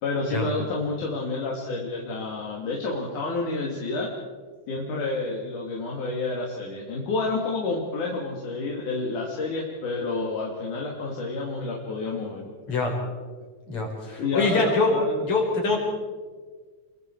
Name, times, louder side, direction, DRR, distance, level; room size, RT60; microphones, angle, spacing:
voice 1, 0.0-4.1 4.7-12.5 14.2-15.3 15.7-15.8, left 3 dB, 75° left, -2 dB, 4.0 m, -29 dB
voice 2, 13.7-14.9 15.2-15.8, left 3 dB, 60° left, 0 dB, 6.3 m, -24 dB
28.5 x 23.0 x 4.6 m, 1.5 s
omnidirectional pair, 3.6 m